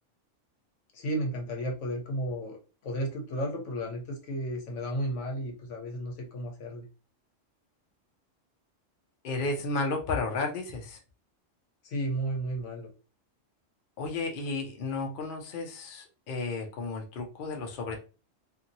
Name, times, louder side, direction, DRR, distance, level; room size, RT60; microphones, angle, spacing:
voice 1, 0.9-6.9 11.8-12.9, right 1 dB, 70° left, 1 dB, 1.1 m, -33 dB
voice 2, 9.2-11.0 14.0-18.0, left 3 dB, 55° left, 2 dB, 0.7 m, -33 dB
2.7 x 2.6 x 2.6 m, 0.33 s
omnidirectional pair, 1.3 m